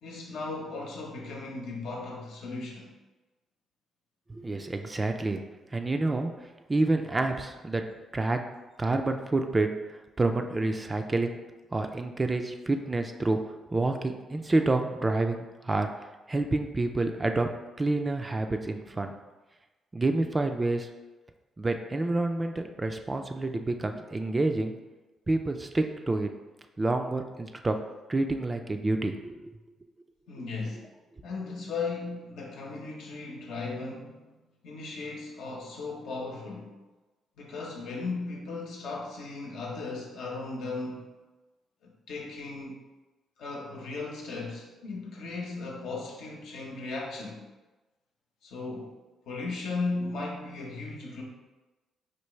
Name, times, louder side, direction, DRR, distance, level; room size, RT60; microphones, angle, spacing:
voice 1, 0.0-2.9 30.3-30.9 31.2-34.3 34.6-36.8 37.4-41.1 41.8-42.8 43.4-47.4 48.4-48.9 49.2-51.2, left 3 dB, 80° left, -1 dB, 0.9 m, -36 dB
voice 2, 4.3-5.4 5.7-6.3 6.7-7.8 8.1-8.4 8.8-11.4 11.7-13.4 13.7-15.9 16.3-17.5 17.8-19.1 19.9-20.9 21.6-24.7 25.3-26.3 26.8-27.8 28.1-29.5, right 2 dB, 20° right, 5 dB, 0.3 m, -28 dB
4.5 x 2.4 x 3.1 m, 1.2 s
cardioid pair, 90°, 0 cm